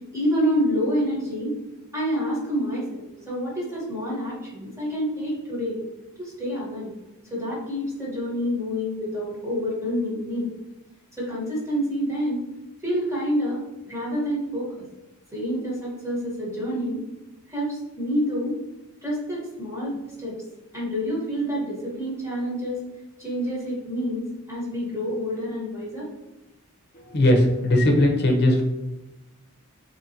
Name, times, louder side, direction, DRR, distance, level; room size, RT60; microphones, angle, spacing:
voice 1, 0.1-1.5 1.9-5.8 6.2-6.9 7.3-10.5 11.1-12.4 12.8-14.7 15.3-17.0 17.5-18.6 19.0-20.4 20.7-22.8 23.2-26.1, equal, 15° right, -5 dB, 1.2 m, -28 dB
voice 2, 26.9-28.6, left 1 dB, 50° left, 2 dB, 0.8 m, -19 dB
4.1 x 2.9 x 2.8 m, 1.0 s
head